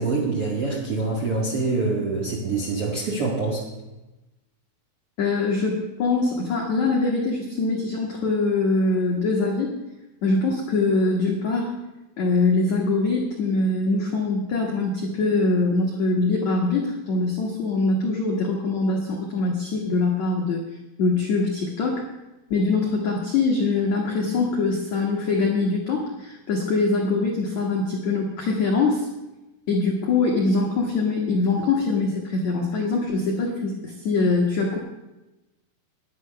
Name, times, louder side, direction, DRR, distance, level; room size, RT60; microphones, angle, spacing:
voice 1, 0.0-3.6, right 3 dB, 55° right, -5 dB, 1.6 m, -25 dB
voice 2, 5.2-9.7 10.2-11.7 12.2-20.6 21.0-22.0 22.5-29.1 29.7-34.8, left 3 dB, 80° left, -1 dB, 1.6 m, -23 dB
11.0 x 9.7 x 6.5 m, 1.0 s
omnidirectional pair, 5.7 m